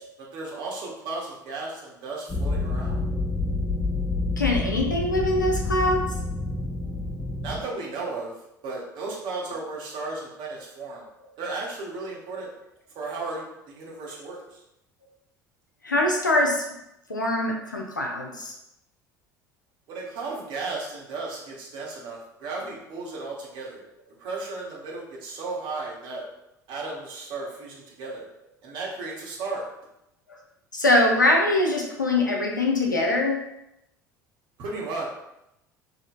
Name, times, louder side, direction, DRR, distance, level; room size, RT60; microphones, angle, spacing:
voice 1, 0.0-3.0 7.4-8.3 8.6-11.1 11.4-12.5 12.9-14.6 19.9-23.9 24.2-26.2 26.7-28.3 28.6-29.6 34.6-35.1, right 3 dB, 50° right, -3 dB, 1.2 m, -35 dB
sound 1, 2.3-7.6, left 2 dB, 15° left, 0.6 m, -28 dB
voice 2, 4.4-6.1 15.8-16.7 17.1-18.5 28.0-28.1 30.3-30.4 30.7-33.4, left 1 dB, 90° left, 1 dB, 0.5 m, -23 dB
4.9 x 2.6 x 2.5 m, 0.84 s
figure-of-eight pair, 65°, 10 cm